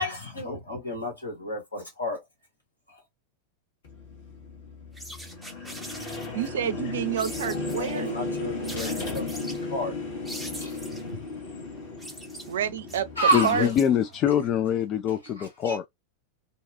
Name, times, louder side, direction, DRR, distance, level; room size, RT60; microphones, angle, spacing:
voice 1, 0.0-2.2 7.7-9.9 10.6-10.7 11.0-11.3 13.2-13.7 15.4-15.8, right 1 dB, 80° left, 1.5 m, -30 dB
sound 1, 3.8-13.6, left 3 dB, 55° left, 1.2 m, -35 dB
sound 2, 4.9-6.5 7.2-8.0 8.6-9.6 10.2-11.1 11.8-14.2, right 1 dB, ahead, 0.7 m, -42 dB
voice 2, 6.3-8.1 12.5-13.1 13.4-13.7, right 9 dB, 60° right, 0.4 m, -28 dB
voice 3, 13.3-15.9, left 9 dB, 35° left, 0.3 m, -24 dB
2.6 x 2.2 x 2.4 m
figure-of-eight pair, 90°, 0 cm